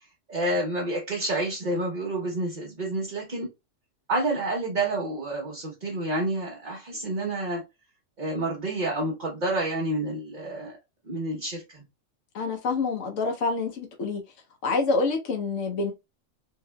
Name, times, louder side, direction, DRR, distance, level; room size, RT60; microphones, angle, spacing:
voice 1, 0.3-3.5 4.1-7.6 8.2-10.8 11.0-11.8, right 2 dB, 40° right, 0.9 m, -29 dB
voice 2, 12.3-14.2 14.6-15.9, left 3 dB, 80° left, 1.0 m, -27 dB
3.6 x 2.6 x 2.2 m
omnidirectional pair, 1.3 m